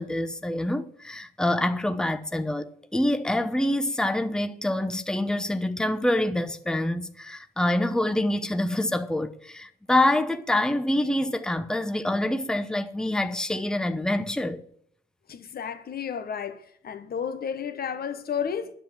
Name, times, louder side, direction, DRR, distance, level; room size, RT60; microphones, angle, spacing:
voice 1, 0.0-14.6, left 1 dB, 5° left, 0.8 m, -26 dB
voice 2, 15.3-16.6 16.8-18.7, left 7 dB, 50° left, 1.2 m, -32 dB
9.9 x 7.6 x 7.4 m
cardioid pair, 90°, 20 cm